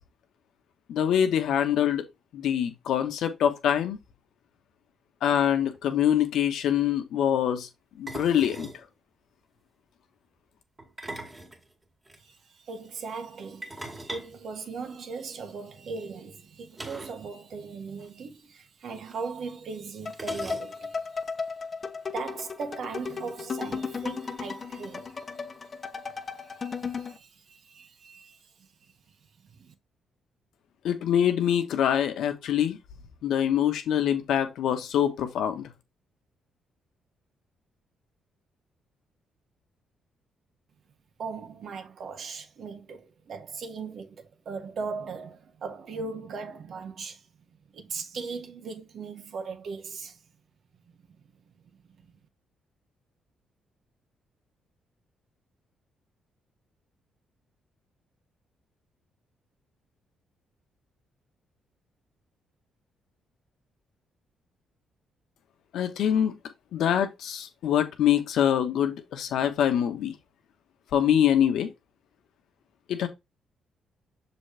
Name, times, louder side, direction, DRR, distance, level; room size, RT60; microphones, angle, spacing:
voice 1, 0.9-2.1 2.3-4.0 5.2-7.7 8.0-8.7 30.8-32.8 33.2-35.7 65.7-66.4 66.7-70.1 70.9-71.7 72.9-73.1, left 9 dB, 75° left, 1.4 m, -24 dB
sound 1, 5.7-5.8 6.0-6.2 8.1-8.8 10.8-12.2 13.6-15.3 16.7-17.3 17.5-17.6 17.9-18.1 19.1-19.2 20.1-21.0, right 2 dB, 20° right, 2.2 m, -41 dB
voice 2, 12.2-21.1 22.1-25.2 26.4-28.4 29.4-29.7 41.2-47.2 47.7-50.2 50.9-51.1 52.1-52.2, right 4 dB, 60° right, 1.4 m, -39 dB
sound 2, 20.1-27.2, left 5 dB, 35° left, 1.0 m, -35 dB
6.9 x 4.1 x 3.5 m
cardioid pair, 90°, 0 cm